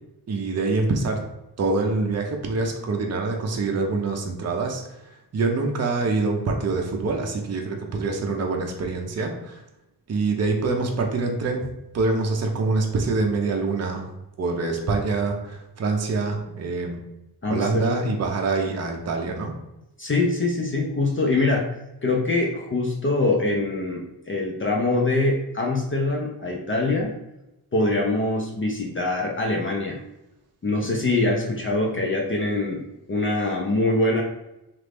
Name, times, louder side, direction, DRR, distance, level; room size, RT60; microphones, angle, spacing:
voice 1, 0.3-1.2 1.6-5.0 5.3-9.6 10.1-11.7 11.9-14.1 14.4-17.0 17.5-19.5, right 3 dB, 40° right, 2 dB, 0.5 m, -25 dB
voice 2, 17.4-18.2 20.0-27.1 27.7-30.0 30.6-32.8 33.1-34.2, left 2 dB, 30° left, -1 dB, 0.5 m, -24 dB
3.0 x 2.5 x 3.3 m, 0.90 s
wide cardioid pair, 145°, 41 cm